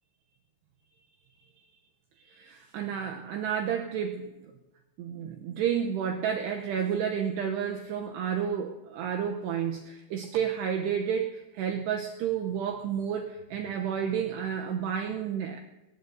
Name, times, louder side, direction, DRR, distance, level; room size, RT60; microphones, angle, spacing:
voice 1, 2.3-4.3 5.0-15.6, right 8 dB, 85° right, 3 dB, 2.4 m, -31 dB
22.5 x 19.0 x 2.7 m, 1.0 s
omnidirectional pair, 5.8 m